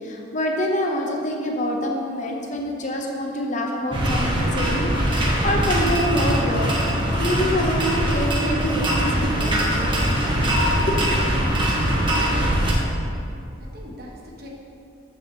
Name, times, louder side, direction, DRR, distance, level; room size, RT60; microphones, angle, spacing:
voice 1, 0.0-10.0 10.8-11.1, equal, 40° left, 1 dB, 0.8 m, -26 dB
sound 1, 3.9-12.7, equal, 25° right, 1.1 m, -22 dB
voice 2, 13.6-14.5, equal, 50° right, -2 dB, 1.1 m, -43 dB
7.2 x 6.6 x 4.5 m, 2.6 s
head